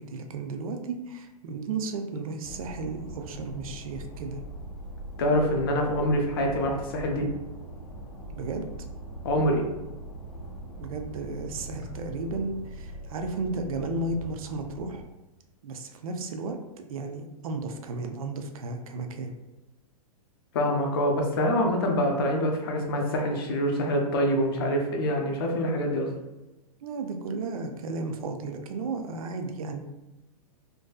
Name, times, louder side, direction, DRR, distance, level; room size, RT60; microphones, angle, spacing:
voice 1, 0.0-4.4 8.3-8.7 10.8-15.1 15.6-16.6 16.9-19.3 26.8-29.8, right 3 dB, 65° right, 5 dB, 0.4 m, -34 dB
sound 1, 2.4-15.1, right 1 dB, 80° left, 0.7 m, -41 dB
voice 2, 5.2-7.3 9.2-9.6 20.5-26.1, equal, 40° left, 2 dB, 0.4 m, -25 dB
2.5 x 2.3 x 2.3 m, 1.0 s
hypercardioid pair, 170°, 19 cm